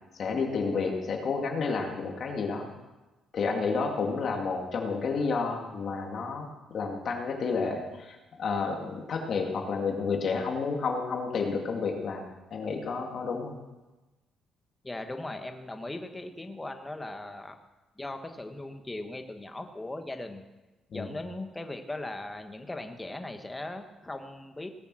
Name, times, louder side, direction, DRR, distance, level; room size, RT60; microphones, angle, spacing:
voice 1, 0.1-2.7 3.3-13.5 20.9-21.1, left 4 dB, 55° left, 2 dB, 2.4 m, -30 dB
voice 2, 14.8-17.6 18.0-20.4 20.9-24.7, left 2 dB, 15° left, 6 dB, 1.3 m, -38 dB
18.0 x 7.0 x 6.3 m, 1.1 s
cardioid pair, 90°, 0 cm